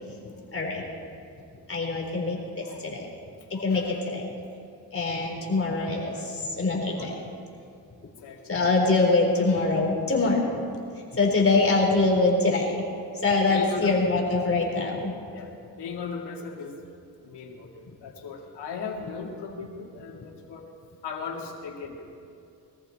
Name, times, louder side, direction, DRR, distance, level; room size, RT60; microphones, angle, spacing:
voice 1, 0.5-0.8 1.7-3.1 3.5-4.3 4.9-7.1 8.5-10.6 11.1-12.8 13.1-15.1, left 3 dB, 35° left, -1 dB, 3.8 m, -24 dB
voice 2, 13.5-13.9 15.3-16.7 17.2-20.7 21.0-22.1, left 5 dB, 80° left, 0 dB, 2.5 m, -37 dB
22.5 x 14.0 x 4.3 m, 2.5 s
cardioid pair, 85°, 41 cm